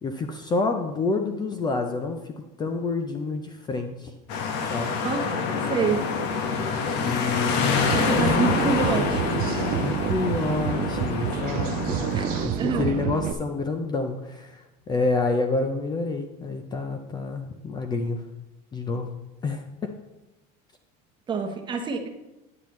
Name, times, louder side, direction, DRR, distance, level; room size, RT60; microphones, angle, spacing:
voice 1, 0.0-4.1 4.7-4.9 7.0-9.1 9.8-12.1 12.4-18.2 18.7-19.1 19.4-19.9, left 3 dB, 20° left, 6 dB, 0.6 m, -28 dB
sound 1, 4.3-12.5, left 5 dB, 65° left, 1.4 m, -27 dB
voice 2, 5.6-6.0 7.9-9.4 12.1-12.3 12.6-12.9 21.3-22.1, right 5 dB, 25° right, 3 dB, 1.0 m, -27 dB
sound 2, 7.8-13.3, right 9 dB, 45° right, 0.6 m, -28 dB
10.0 x 8.6 x 3.1 m, 0.99 s
cardioid pair, 145°, 20 cm